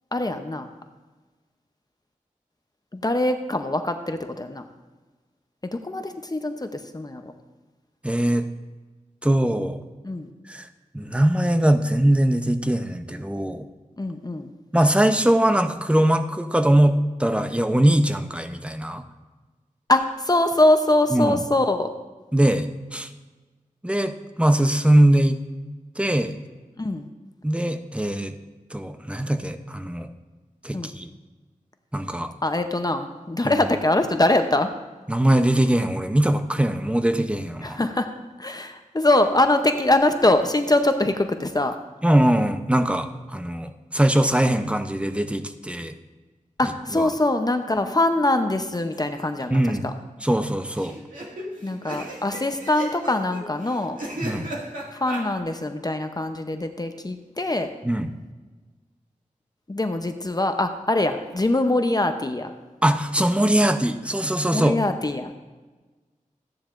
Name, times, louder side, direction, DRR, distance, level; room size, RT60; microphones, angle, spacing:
voice 1, 0.1-0.7 2.9-4.6 5.7-7.3 10.0-10.3 14.0-14.5 19.9-21.9 26.8-27.1 30.7-30.9 32.4-34.7 37.6-38.1 38.4-41.7 46.6-49.8 51.6-54.0 54.9-57.7 59.7-62.5 64.5-65.4, left 2 dB, 30° left, 7 dB, 0.7 m, -23 dB
voice 2, 8.0-8.5 9.2-9.8 10.5-10.7 10.9-13.7 14.7-19.0 21.1-21.4 22.3-23.1 23.8-25.4 26.0-26.3 27.4-28.3 28.7-30.1 30.6-31.1 31.9-32.3 33.4-33.5 35.1-37.8 42.0-45.9 46.9-47.1 49.5-49.8 50.2-50.9 54.2-54.5 57.8-58.1 62.8-64.7, right 1 dB, 10° right, 8 dB, 0.6 m, -21 dB
sound 1, 48.9-49.4 49.7-49.8 50.0-50.1 50.7-55.2, right 1 dB, 80° right, 2.1 m, -35 dB
14.5 x 10.0 x 2.5 m, 1.3 s
wide cardioid pair, 75°, 14 cm